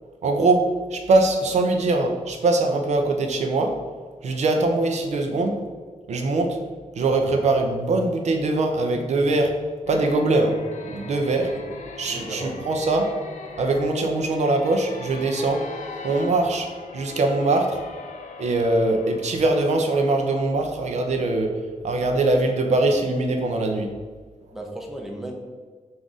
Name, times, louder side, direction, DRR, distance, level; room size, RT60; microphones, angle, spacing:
voice 1, 0.2-0.6 0.9-3.7 4.2-5.5 6.1-6.6 7.0-9.5 9.9-10.5 10.9-11.5 12.0-13.1 13.6-15.6 16.0-16.7 16.9-17.8 18.4-21.5 21.8-23.9, right 2 dB, 65° right, 3 dB, 0.5 m, -22 dB
sound 1, 9.9-20.3, left 4 dB, 80° left, 0.4 m, -41 dB
voice 2, 12.0-12.7 24.5-25.3, right 1 dB, ahead, 0 dB, 0.6 m, -35 dB
3.9 x 2.6 x 4.7 m, 1.5 s
wide cardioid pair, 130°, 13 cm